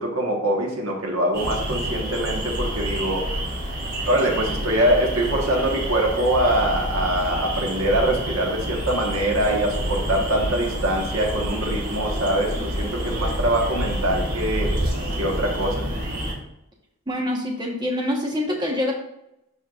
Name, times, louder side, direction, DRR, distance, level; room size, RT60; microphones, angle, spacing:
voice 1, 0.0-3.5 4.0-14.8 15.2-15.9, right 1 dB, 80° right, 0 dB, 1.4 m, -23 dB
sound 1, 1.3-16.3, right 1 dB, 40° right, 1.4 m, -29 dB
Fixed-wing aircraft airplane, 9.4-14.9, right 1 dB, 15° left, 2.4 m, -31 dB
voice 2, 17.1-18.9, left 1 dB, 20° right, 0 dB, 1.2 m, -25 dB
11.0 x 4.5 x 2.5 m, 0.83 s
head